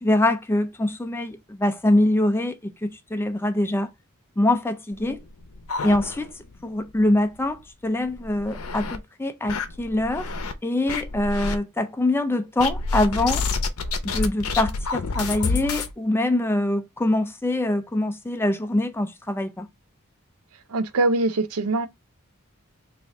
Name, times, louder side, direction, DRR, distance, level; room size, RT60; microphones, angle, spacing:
voice 1, 0.0-3.9 4.4-5.2 5.8-6.3 6.6-10.3 10.6-13.4 14.0-19.7, left 1 dB, 10° left, 0.4 m, -24 dB
sound 1, 5.0-6.6 6.9-7.0 7.4-7.5 8.1-9.0 9.5-10.5 10.9-11.6 12.6-15.9, left 4 dB, 75° left, 0.6 m, -28 dB
voice 2, 20.7-21.9, right 2 dB, 85° right, 0.6 m, -23 dB
3.2 x 2.5 x 3.5 m
head